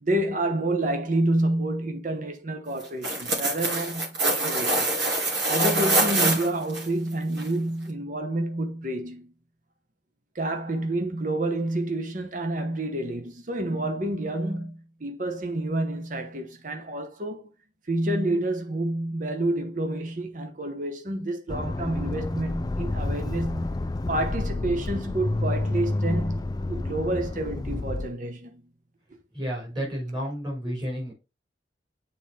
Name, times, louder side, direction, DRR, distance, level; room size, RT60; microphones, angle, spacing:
voice 1, 0.0-4.9 5.5-9.3 10.3-17.5 17.9-23.8 24.1-28.6 30.6-30.7, right 1 dB, 45° right, 1.0 m, -29 dB
sound 1, 2.8-6.8 7.4-7.5, right 2 dB, 85° right, 2.3 m, -24 dB
Accelerating revving vroom, 21.5-28.1, left 2 dB, 20° left, 0.3 m, -29 dB
voice 2, 29.3-31.1, equal, 25° right, 4.3 m, -31 dB
8.3 x 4.3 x 3.4 m
head